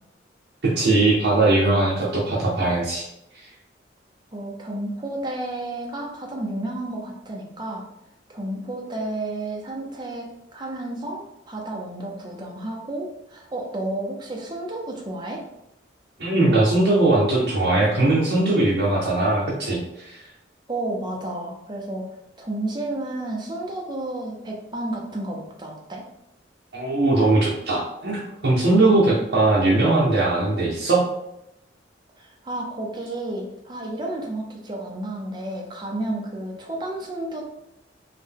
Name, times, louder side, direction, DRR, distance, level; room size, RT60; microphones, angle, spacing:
voice 1, 0.6-3.0 16.2-20.2 26.7-31.0, right 2 dB, 60° right, -6 dB, 0.7 m, -20 dB
voice 2, 4.3-7.8 8.3-15.4 20.7-22.1 22.4-26.0 32.2-37.4, right 1 dB, 25° right, 0 dB, 0.6 m, -31 dB
3.7 x 2.2 x 3.5 m, 0.83 s
head